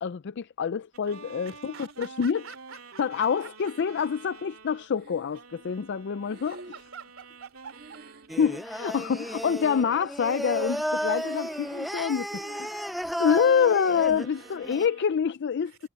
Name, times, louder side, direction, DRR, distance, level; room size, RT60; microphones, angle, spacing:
voice 1, 0.0-2.4 3.0-6.6 8.4-12.9 13.2-15.9, left 7 dB, 60° left, 0.4 m, -26 dB
sound 1, 0.9-4.9 5.3-10.2 10.5-13.8 14.1-15.1, right 4 dB, 85° right, 2.6 m, -50 dB
voice 2, 1.5-3.7 6.4-8.0 15.7-15.9, right 6 dB, 70° right, 3.8 m, -47 dB
Breathing, 4.9-5.7 6.2-8.7 8.9-9.8 10.1-10.7 11.0-11.7 12.3-12.8, right 2 dB, 50° right, 2.0 m, -49 dB
Singing, 8.3-14.9, equal, ahead, 0.5 m, -33 dB
head